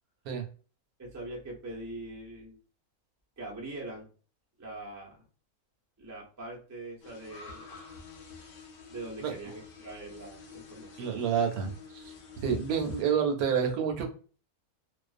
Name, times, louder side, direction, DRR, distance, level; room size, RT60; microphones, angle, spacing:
voice 1, 1.0-2.6 3.4-4.1 4.6-5.2 6.0-7.8 8.9-11.1, right 2 dB, 25° right, -2 dB, 0.3 m, -42 dB
sound 1, 7.0-13.0, left 4 dB, 80° left, 0.5 m, -47 dB
voice 2, 11.0-12.1 12.4-14.1, right 7 dB, 75° right, 4 dB, 1.0 m, -29 dB
2.4 x 2.2 x 2.4 m, 0.38 s
omnidirectional pair, 1.6 m